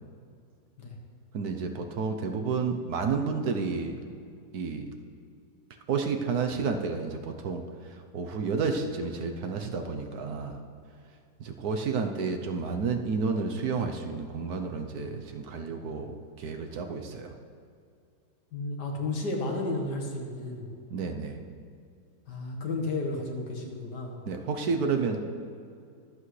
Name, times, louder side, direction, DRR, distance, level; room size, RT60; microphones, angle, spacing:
voice 1, 1.3-4.0 4.5-4.9 5.9-10.6 11.4-17.3 20.9-21.4 24.3-25.2, right 5 dB, 70° right, 4 dB, 1.3 m, -31 dB
voice 2, 18.5-20.7 22.3-24.2, left 2 dB, 80° left, 1 dB, 2.1 m, -32 dB
23.0 x 8.2 x 3.2 m, 2.4 s
omnidirectional pair, 1.8 m